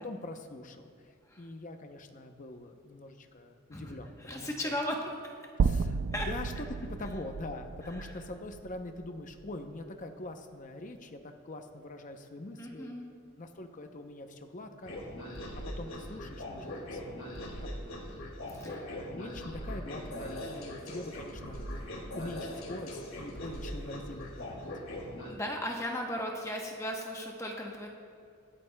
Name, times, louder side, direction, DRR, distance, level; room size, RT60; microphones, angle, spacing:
voice 1, 0.0-4.8 5.6-6.5 6.8-12.9 13.3-14.9 15.6-17.7 18.5-21.7 22.1-24.6, left 2 dB, 40° left, 6 dB, 0.6 m, -43 dB
voice 2, 4.2-5.1 6.1-6.3 12.6-13.1 18.5-18.8 25.3-27.9, equal, 15° left, 1 dB, 0.9 m, -36 dB
sound 1, 5.6-9.8, right 5 dB, 60° right, 0.3 m, -33 dB
sound 2, 14.8-25.3, equal, 75° left, 2.0 m, -41 dB
24.5 x 9.1 x 2.2 m, 2.5 s
head